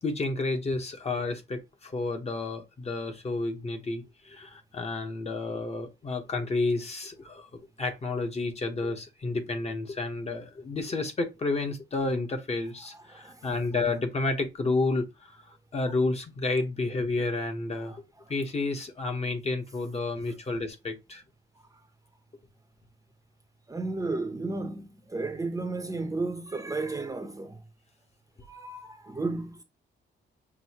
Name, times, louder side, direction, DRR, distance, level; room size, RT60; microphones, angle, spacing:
voice 1, 0.0-18.0 18.3-21.2, left 3 dB, 35° left, 1.0 m, -31 dB
voice 2, 12.9-13.5 17.9-18.0 23.7-27.6 28.5-29.6, right 3 dB, 15° right, 0.7 m, -33 dB
6.2 x 2.7 x 2.8 m
cardioid pair, 130°, 19 cm